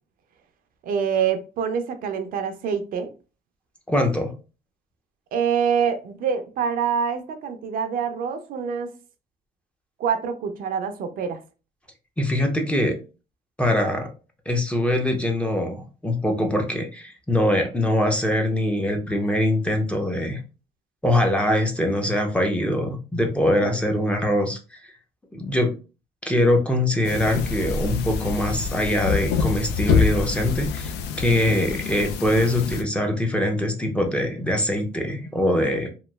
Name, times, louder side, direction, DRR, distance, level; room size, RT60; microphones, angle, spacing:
voice 1, 0.8-3.1 5.3-8.9 10.0-11.4 23.6-23.8 31.5-31.6, right 7 dB, 60° right, 0.5 m, -26 dB
voice 2, 3.9-4.3 12.2-13.0 13.6-14.1 14.5-20.4 21.0-24.8 25.3-25.7 26.3-35.9, left 1 dB, 5° left, 0.5 m, -23 dB
sound 1, 27.0-32.8, left 6 dB, 85° left, 0.4 m, -26 dB
2.9 x 2.3 x 2.2 m
cardioid pair, 110°, 17 cm